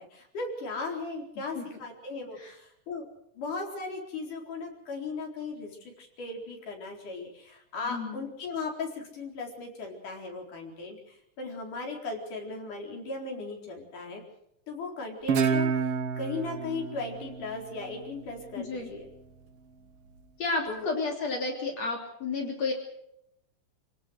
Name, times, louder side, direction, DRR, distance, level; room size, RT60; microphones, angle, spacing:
voice 1, 0.0-3.1 3.4-14.2 14.7-19.1 20.7-20.9, left 3 dB, 90° left, 1 dB, 5.9 m, -37 dB
voice 2, 7.8-8.2 18.6-18.9 20.4-22.7, left 3 dB, 55° left, 2 dB, 4.3 m, -32 dB
Guitar, 15.3-18.5, right 5 dB, 55° right, 2.3 m, -29 dB
26.5 x 17.5 x 6.6 m, 0.77 s
omnidirectional pair, 3.5 m